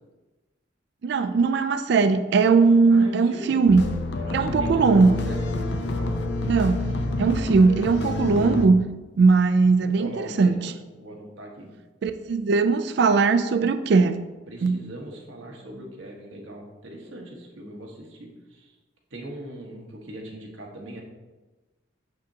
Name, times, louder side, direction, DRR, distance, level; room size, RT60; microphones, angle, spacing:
voice 1, 1.0-3.9 4.3-5.2 6.5-6.9 7.2-8.9 9.2-10.6 12.0-14.2 14.6-14.8, right 4 dB, 60° right, 10 dB, 0.3 m, -19 dB
voice 2, 2.9-3.6 4.2-6.1 9.8-10.7 11.0-11.7 14.5-18.7 19.1-21.0, right 1 dB, 90° right, 0 dB, 1.2 m, -40 dB
sound 1, 3.7-8.7, left 2 dB, 60° left, 0.5 m, -28 dB
6.3 x 6.0 x 2.8 m, 1.2 s
head